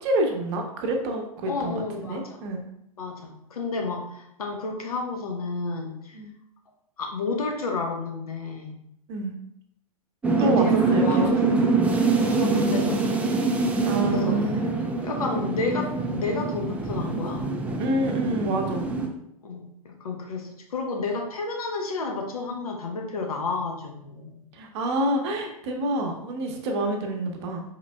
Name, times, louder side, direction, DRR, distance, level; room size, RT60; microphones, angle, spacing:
voice 1, 0.0-2.6 6.1-6.3 9.1-9.3 10.4-11.4 12.3-13.1 13.8-14.7 17.8-18.9 24.5-27.6, right 1 dB, 45° right, 3 dB, 0.8 m, -27 dB
voice 2, 1.5-2.4 3.0-6.1 7.0-8.8 10.4-11.7 12.1-13.2 14.1-14.5 15.0-17.5 19.4-24.4, left 3 dB, 70° left, 3 dB, 0.9 m, -31 dB
sound 1, 10.2-19.1, right 3 dB, 5° right, 0.4 m, -24 dB
4.9 x 3.7 x 2.2 m, 0.76 s
figure-of-eight pair, 100°, 20 cm